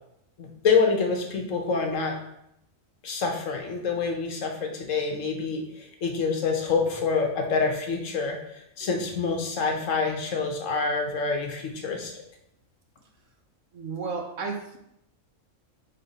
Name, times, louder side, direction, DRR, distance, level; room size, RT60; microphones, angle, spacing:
voice 1, 0.4-2.1 3.0-8.4 8.8-12.1, left 4 dB, 80° left, 2 dB, 1.4 m, -26 dB
voice 2, 13.7-14.8, right 4 dB, 75° right, 3 dB, 1.2 m, -33 dB
5.4 x 4.2 x 4.1 m, 0.78 s
omnidirectional pair, 1.3 m